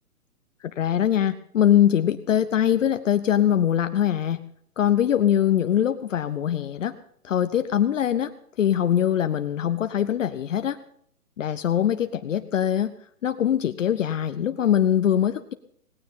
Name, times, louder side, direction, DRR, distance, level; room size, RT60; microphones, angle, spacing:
voice 1, 0.6-4.4 4.8-7.0 7.2-8.3 8.6-10.8 11.4-12.9 13.2-15.5, left 10 dB, 55° left, 11 dB, 0.9 m, -22 dB
18.0 x 16.5 x 3.7 m, 0.63 s
hypercardioid pair, 145°, 45 cm